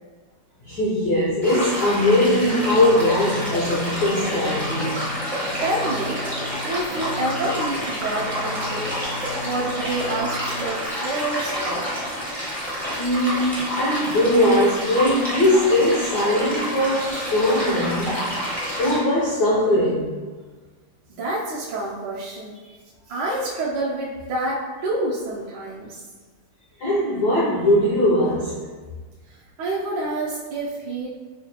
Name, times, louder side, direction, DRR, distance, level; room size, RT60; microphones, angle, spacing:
voice 1, 0.6-5.0 13.0-18.3 18.8-20.1 26.8-28.6, left 1 dB, 70° left, -6 dB, 1.0 m, -20 dB
sound 1, 1.4-19.0, equal, ahead, 0.4 m, -28 dB
Singing, 2.2-11.2, left 1 dB, 90° left, 2.5 m, -38 dB
voice 2, 5.6-6.2 6.6-11.9 21.1-22.6 23.1-26.0 29.6-31.1, right 2 dB, 70° right, -8 dB, 1.2 m, -28 dB
5.0 x 2.3 x 2.8 m, 1.4 s
omnidirectional pair, 2.3 m